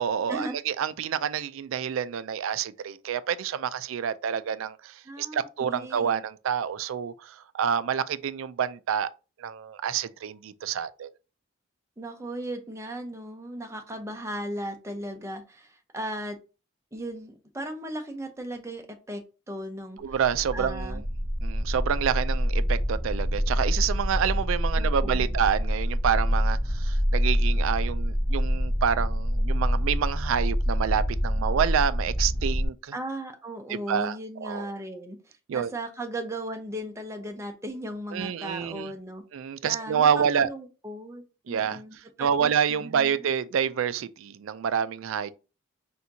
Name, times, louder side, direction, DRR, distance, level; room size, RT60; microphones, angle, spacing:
voice 1, 0.0-9.1 9.4-11.1 20.0-21.0 21.4-32.9 33.7-34.2 34.4-34.7 35.5-35.7 38.1-38.9 39.3-40.5 41.5-45.3, right 8 dB, 75° right, 0.3 m, -28 dB
voice 2, 5.0-6.2 12.0-16.4 16.9-19.2 19.5-20.0 20.5-21.0 24.7-25.4 32.9-39.2 39.6-43.2, right 1 dB, 15° right, 0.7 m, -37 dB
sound 1, 20.1-32.7, equal, ahead, 1.4 m, -26 dB
4.3 x 3.5 x 2.7 m
head